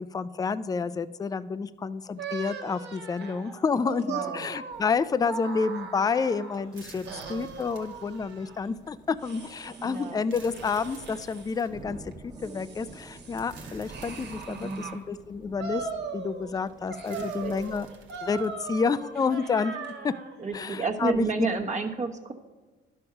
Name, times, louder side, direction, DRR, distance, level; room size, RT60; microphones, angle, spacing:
voice 1, 0.0-15.9 16.1-17.9 18.2-20.1 20.5-21.5, left 5 dB, 20° left, 14 dB, 0.4 m, -29 dB
sound 1, 2.2-6.6 7.1-8.6 9.2-10.1 10.5-11.5 12.1-15.0 15.6-16.6 16.9-20.3, right 5 dB, 60° right, 1.5 m, -39 dB
voice 2, 4.1-4.5 7.0-7.6 9.8-10.3 14.5-15.0 17.1-17.6 20.4-22.3, right 4 dB, 35° right, 3 dB, 1.2 m, -32 dB
sound 2, 4.7-19.2, right 4 dB, 75° right, 1.1 m, -52 dB
sound 3, 8.4-17.1, right 2 dB, 20° right, 1.2 m, -49 dB
11.5 x 5.4 x 5.7 m, 1.2 s
cardioid pair, 90°, 20 cm